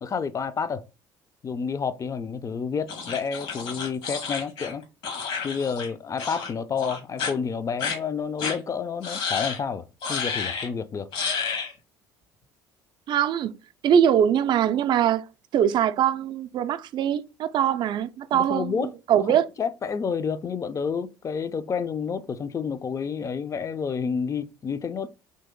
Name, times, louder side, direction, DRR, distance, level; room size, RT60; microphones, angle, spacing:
voice 1, 0.0-0.8 1.4-4.8 5.4-11.1 18.3-18.9 19.1-19.3 19.6-25.1, left 6 dB, 30° left, 0.4 m, -29 dB
sound 1, 2.9-5.9 6.2-6.5 6.8-7.3 7.8-8.0 8.4-8.6 9.0-9.6 10.0-10.7 11.1-11.7, left 5 dB, 65° left, 1.2 m, -30 dB
voice 2, 13.1-13.5 13.8-15.2 15.5-19.4, right 9 dB, 50° right, 0.3 m, -22 dB
3.0 x 2.8 x 3.6 m
hypercardioid pair, 60°, 10 cm